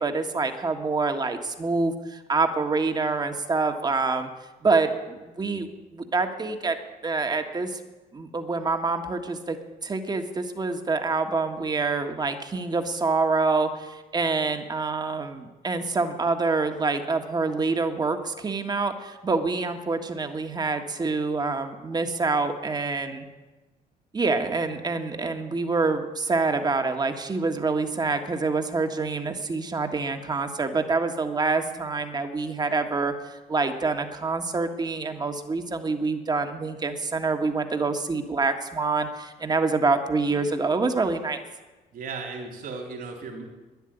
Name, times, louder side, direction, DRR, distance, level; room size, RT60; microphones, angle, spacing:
voice 1, 0.0-4.3 4.6-6.8 7.0-7.8 8.1-9.6 9.8-23.2 24.1-41.4, right 3 dB, 25° right, 6 dB, 1.6 m, -26 dB
voice 2, 41.9-43.5, right 4 dB, 60° right, 1 dB, 3.8 m, -36 dB
12.0 x 10.0 x 10.0 m, 1.2 s
cardioid pair, 110°, 17 cm